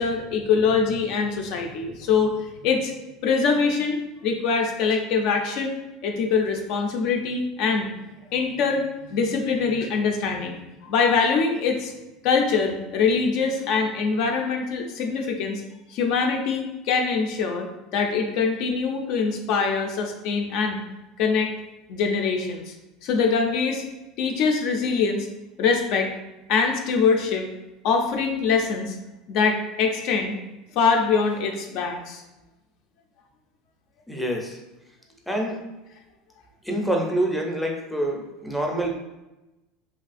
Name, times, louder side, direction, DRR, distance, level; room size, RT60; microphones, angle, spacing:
voice 1, 0.0-2.3 2.6-2.9 3.2-5.7 6.0-7.9 8.3-11.9 12.2-15.6 15.9-20.8 21.2-21.5 21.9-22.7 23.0-23.8 24.2-25.3 25.6-26.1 26.5-27.5 27.8-29.0 29.3-30.4 30.7-32.2, left 5 dB, 60° left, 3 dB, 0.4 m, -23 dB
voice 2, 34.1-34.6 35.3-35.6 36.6-38.9, right 1 dB, 5° left, 0 dB, 0.5 m, -26 dB
3.1 x 2.4 x 2.5 m, 1.0 s
supercardioid pair, 130°, 0 cm